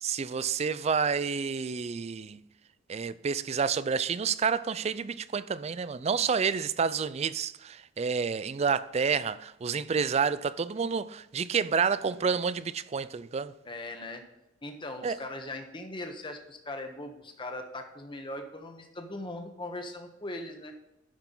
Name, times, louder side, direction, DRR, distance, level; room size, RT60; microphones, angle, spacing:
voice 1, 0.0-2.4 2.9-13.5 15.0-15.2, right 6 dB, 35° right, 0.4 m, -29 dB
voice 2, 13.6-14.2 14.6-20.7, left 1 dB, 25° left, 1.1 m, -40 dB
11.5 x 5.9 x 3.9 m
head